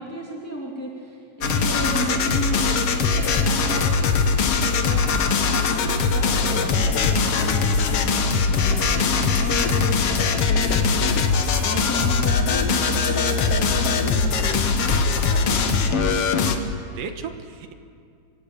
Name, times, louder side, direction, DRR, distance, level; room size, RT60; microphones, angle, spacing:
voice 1, 0.0-3.9 4.6-16.0, equal, 5° left, -2 dB, 1.6 m, -33 dB
sound 1, 1.4-16.6, left 5 dB, 60° left, 1.6 m, -21 dB
voice 2, 16.9-17.7, right 6 dB, 65° right, 6 dB, 2.8 m, -36 dB
28.5 x 17.0 x 8.4 m, 2.3 s
omnidirectional pair, 4.5 m